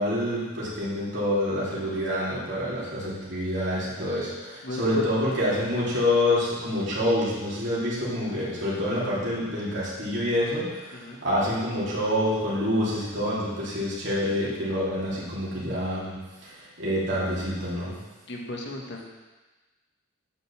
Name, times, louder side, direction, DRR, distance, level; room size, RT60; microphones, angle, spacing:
voice 1, 0.0-16.1 16.4-17.9, left 1 dB, 55° right, -8 dB, 3.0 m, -27 dB
voice 2, 4.6-5.1 10.9-11.2 18.3-19.0, left 1 dB, 55° left, 0 dB, 1.4 m, -35 dB
8.9 x 5.3 x 7.1 m, 1.2 s
head